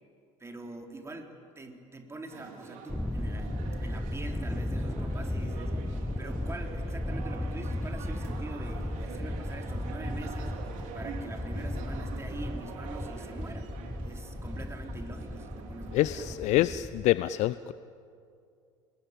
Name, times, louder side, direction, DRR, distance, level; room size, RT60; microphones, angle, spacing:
voice 1, 0.4-5.7 6.2-10.6 10.9-13.7 14.0-16.8, right 2 dB, 15° right, 3 dB, 3.8 m, -44 dB
sound 1, 2.3-16.4, right 5 dB, 55° right, 3.8 m, -45 dB
Thunder, 2.9-17.1, left 1 dB, 5° left, 0.8 m, -35 dB
voice 2, 15.9-17.7, left 15 dB, 50° left, 15 dB, 0.6 m, -26 dB
29.5 x 21.0 x 9.1 m, 2.4 s
figure-of-eight pair, 70°, 16 cm